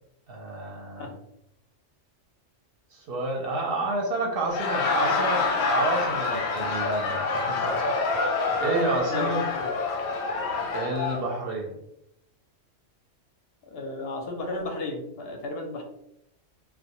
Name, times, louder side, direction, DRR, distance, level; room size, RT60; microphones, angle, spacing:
voice 1, 0.3-1.1 2.9-8.0 8.6-9.4 10.7-11.8, right 2 dB, 60° right, -1 dB, 0.7 m, -30 dB
Laughter, 4.4-11.2, left 4 dB, 90° left, 0.9 m, -27 dB
voice 2, 9.1-9.7 13.7-15.8, left 2 dB, 65° left, 3 dB, 0.7 m, -34 dB
2.2 x 2.1 x 2.7 m, 0.80 s
omnidirectional pair, 1.3 m